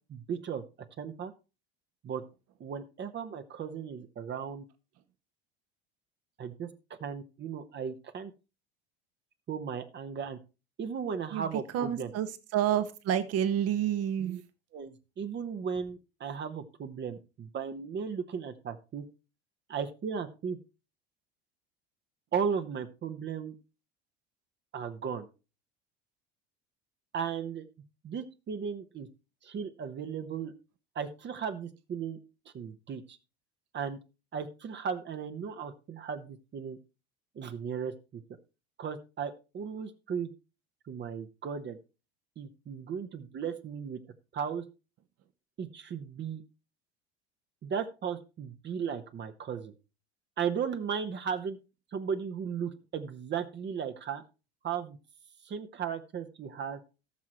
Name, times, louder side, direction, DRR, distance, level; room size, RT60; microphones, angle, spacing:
voice 1, 0.1-0.6 1.0-1.3 2.0-2.2 2.6-4.6 6.4-6.7 7.0-8.3 9.5-10.4 10.8-12.1 14.2-14.4 14.7-19.0 19.7-20.6 22.3-23.5 24.7-25.3 27.1-27.6 28.0-29.1 29.4-30.5 30.9-32.2 32.5-33.2 33.7-34.0 34.3-36.8 37.3-38.2 38.8-40.3 40.9-41.8 42.4-44.0 44.3-44.6 45.6-46.4 47.6-49.7 50.4-51.6 51.9-54.2 54.6-55.0 55.4-56.8, right 7 dB, 35° right, 8 dB, 1.2 m, -36 dB
voice 2, 11.7-12.3 12.5-14.4, right 10 dB, 50° right, 11 dB, 1.4 m, -28 dB
18.5 x 6.1 x 3.1 m, 0.30 s
hypercardioid pair, 70°, 30 cm